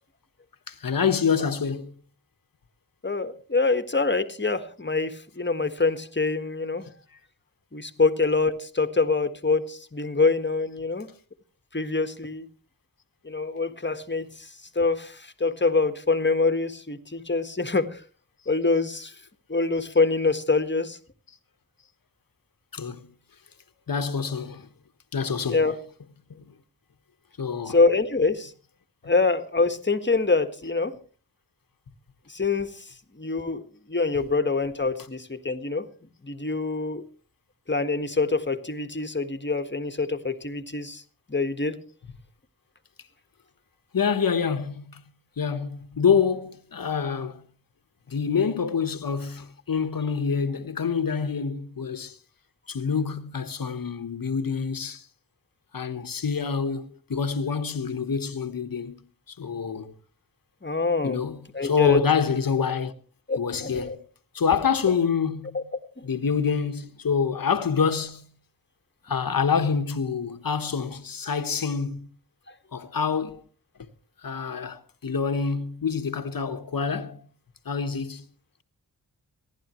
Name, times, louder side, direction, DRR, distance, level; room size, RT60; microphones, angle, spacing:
voice 1, 0.7-1.9 22.7-23.1 23.9-24.7 25.1-25.7 26.4-26.5 27.4-27.8 43.9-45.0 45.4-47.4 48.1-52.2 52.7-55.0 55.7-59.9 61.0-62.9 63.4-64.0 64.3-65.6 66.0-68.3 69.0-72.1 72.7-73.4 74.2-77.3 77.6-78.2, left 6 dB, 65° left, 1.4 m, -26 dB
voice 2, 3.0-6.8 7.7-11.1 11.7-12.5 13.2-14.5 14.7-18.0 18.5-19.1 19.5-21.0 25.5-25.7 27.7-28.5 29.0-30.9 32.3-32.9 33.1-35.9 36.2-37.0 37.7-41.0 41.3-41.8 60.6-61.2 61.5-62.0 63.3-64.0 65.5-65.6 66.0-66.1, left 3 dB, 30° left, 1.7 m, -25 dB
27.0 x 11.5 x 3.1 m
cardioid pair, 45°, 36 cm